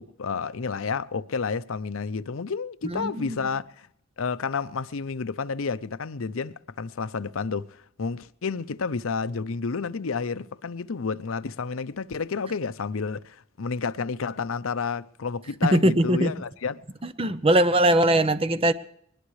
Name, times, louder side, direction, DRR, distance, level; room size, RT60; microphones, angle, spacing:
voice 1, 0.0-3.9 4.2-16.8, left 5 dB, 75° left, 0.6 m, -30 dB
voice 2, 2.8-3.4 15.7-16.3 17.2-18.7, right 1 dB, 30° right, 0.8 m, -21 dB
21.5 x 20.0 x 3.2 m
head